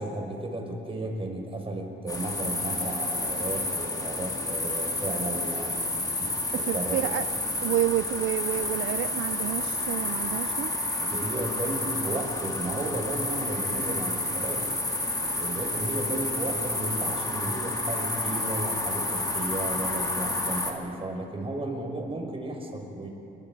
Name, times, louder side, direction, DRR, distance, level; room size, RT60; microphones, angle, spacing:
voice 1, 0.0-5.9 6.2-7.0 11.0-14.7 15.4-23.1, right 2 dB, 30° right, 2 dB, 5.3 m, -34 dB
sound 1, 2.1-20.7, left 2 dB, 20° left, 3.0 m, -30 dB
voice 2, 6.6-7.2 7.6-10.7, right 14 dB, 85° right, 13 dB, 0.5 m, -29 dB
29.0 x 22.5 x 5.2 m, 2.7 s
cardioid pair, 90°, 20 cm